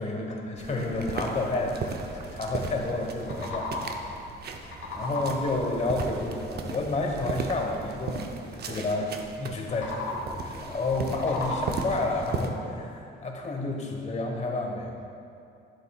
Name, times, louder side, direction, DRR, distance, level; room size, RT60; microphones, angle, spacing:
voice 1, 0.0-3.7 4.9-15.1, left 2 dB, 35° left, 1 dB, 1.2 m, -30 dB
sound 1, 0.6-12.5, right 4 dB, 55° right, 0.7 m, -37 dB
sound 2, 3.2-4.1 4.5-5.6 9.6-10.5 10.9-12.0, left 2 dB, 75° left, 1.3 m, -35 dB
11.5 x 7.0 x 2.4 m, 2.6 s
cardioid pair, 90°, 20 cm